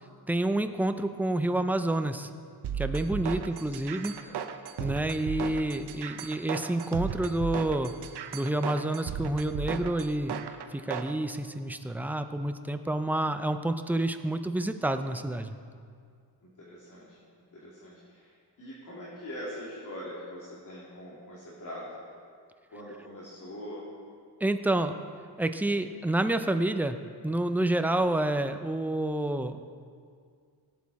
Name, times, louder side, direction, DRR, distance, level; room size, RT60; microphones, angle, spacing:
voice 1, 0.3-2.3 2.8-4.1 4.8-7.9 8.3-10.3 10.7-15.5 24.4-25.0 25.4-27.0 27.2-29.7, right 1 dB, 5° right, 8 dB, 0.5 m, -28 dB
sound 1, 2.6-11.1, right 8 dB, 75° right, 0.9 m, -35 dB
voice 2, 16.6-17.2 17.5-22.0 22.7-23.8, equal, 50° left, -7 dB, 2.9 m, -43 dB
17.5 x 8.4 x 4.2 m, 2.2 s
cardioid pair, 120°, 41 cm